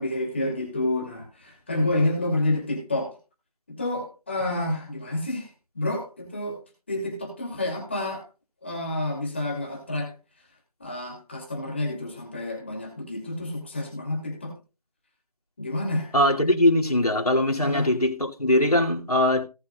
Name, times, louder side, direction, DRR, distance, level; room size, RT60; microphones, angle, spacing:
voice 1, 0.0-3.1 3.7-5.5 5.7-6.6 6.9-8.2 8.6-10.1 10.8-14.5 15.6-16.1 17.6-17.9, left 1 dB, 20° left, 2.5 m, -29 dB
voice 2, 16.1-19.4, left 1 dB, 75° left, 2.5 m, -21 dB
18.0 x 6.1 x 2.3 m
figure-of-eight pair, 170°, 19 cm